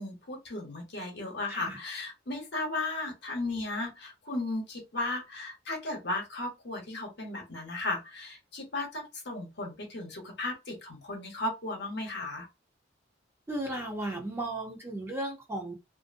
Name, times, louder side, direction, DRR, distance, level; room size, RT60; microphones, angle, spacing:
voice 1, 0.0-12.5, left 2 dB, 60° left, 1.0 m, -35 dB
voice 2, 13.5-15.7, right 1 dB, 15° right, 0.7 m, -35 dB
2.6 x 2.1 x 2.5 m
head